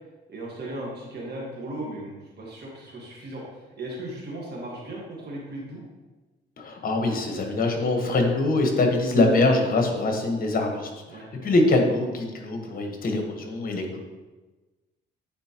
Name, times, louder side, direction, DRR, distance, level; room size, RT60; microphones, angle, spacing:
voice 1, 0.3-5.8 11.1-11.3, right 1 dB, 55° right, -3 dB, 1.6 m, -37 dB
voice 2, 6.6-14.0, left 2 dB, 45° left, 3 dB, 1.3 m, -23 dB
9.4 x 4.2 x 3.0 m, 1.2 s
cardioid pair, 90°, 20 cm